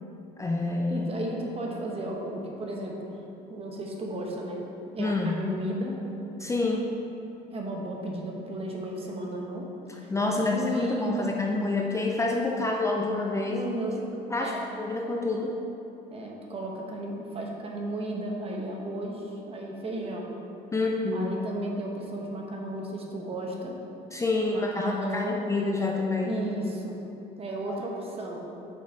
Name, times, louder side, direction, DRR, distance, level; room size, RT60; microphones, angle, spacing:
voice 1, 0.4-1.1 5.0-5.4 6.4-6.9 9.9-13.7 14.3-15.5 20.7-21.3 24.1-26.3 27.7-27.8, left 3 dB, 15° left, 0 dB, 0.5 m, -28 dB
voice 2, 0.9-3.2 3.5-4.6 4.9-6.0 7.5-9.7 10.0-11.4 13.5-14.0 14.4-14.7 16.1-20.3 21.1-23.8 24.5-25.4 26.2-27.0 27.4-28.5, right 1 dB, 35° right, 0 dB, 1.1 m, -34 dB
6.4 x 5.1 x 4.0 m, 2.8 s
cardioid pair, 110°, 17 cm